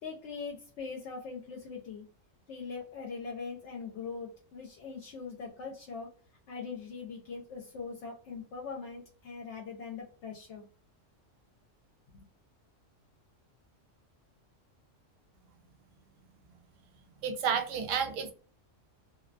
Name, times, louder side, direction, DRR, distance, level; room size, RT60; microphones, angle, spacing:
voice 1, 0.0-2.1 2.5-6.1 6.5-10.7 12.1-12.3, left 5 dB, 70° left, 0 dB, 0.9 m, -41 dB
voice 2, 17.2-18.3, right 7 dB, 90° right, 6 dB, 1.0 m, -31 dB
2.5 x 2.2 x 2.3 m, 0.39 s
omnidirectional pair, 1.3 m